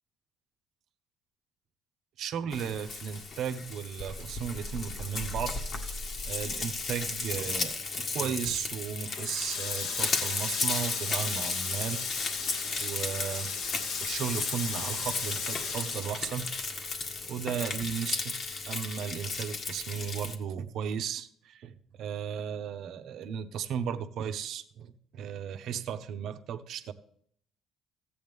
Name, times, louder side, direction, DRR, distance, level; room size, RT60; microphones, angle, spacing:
voice 1, 2.2-5.5 5.8-12.0 12.8-17.0 17.3-18.3 18.7-26.9, right 8 dB, 70° right, 9 dB, 0.8 m, -35 dB
Frying (food), 2.5-20.4, left 4 dB, 55° left, 1.7 m, -35 dB
Water tap faucet, 9.1-16.9 17.3-18.6, left 5 dB, 75° left, 1.5 m, -36 dB
14.5 x 8.6 x 3.6 m, 0.63 s
supercardioid pair, 70°, 0 cm